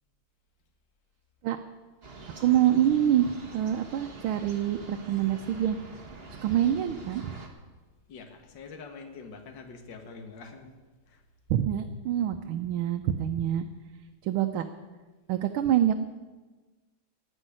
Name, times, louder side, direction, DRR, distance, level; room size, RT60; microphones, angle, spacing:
sound 1, 2.0-7.5, right 3 dB, 30° right, 1.7 m, -45 dB
voice 1, 2.4-5.8 6.4-7.4 11.5-13.6 14.2-14.6 15.3-15.9, right 11 dB, 80° right, 5 dB, 1.6 m, -26 dB
voice 2, 8.1-10.8 11.1-11.2, left 4 dB, 60° left, 4 dB, 2.2 m, -45 dB
18.0 x 6.3 x 9.9 m, 1.3 s
omnidirectional pair, 2.3 m